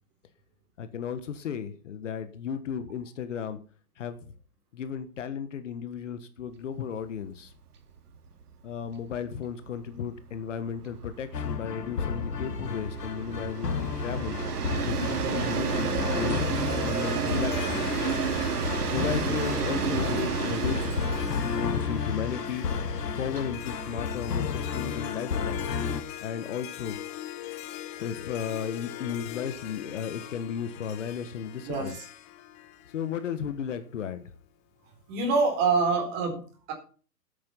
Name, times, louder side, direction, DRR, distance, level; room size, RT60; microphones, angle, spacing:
voice 1, 0.8-3.6 4.0-4.2 4.7-7.5 8.6-14.4 14.8-16.5 16.8-18.0 18.9-21.0 21.5-22.7 23.1-25.7 26.2-27.0 28.0-32.0 32.9-34.2, left 7 dB, 50° left, 10 dB, 1.5 m, -34 dB
Train, 7.0-7.1 7.5-7.6 7.8-25.2, right 6 dB, 70° right, 2.6 m, -32 dB
sound 1, 11.3-26.0, left 6 dB, 85° left, 1.9 m, -32 dB
Harp, 16.5-33.8, left 13 dB, 15° left, 0.9 m, -42 dB
voice 2, 31.6-32.0 35.1-36.4 36.7-36.8, right 4 dB, 20° right, 3 dB, 4.2 m, -25 dB
14.5 x 8.9 x 5.6 m, 0.39 s
hypercardioid pair, 160°, 47 cm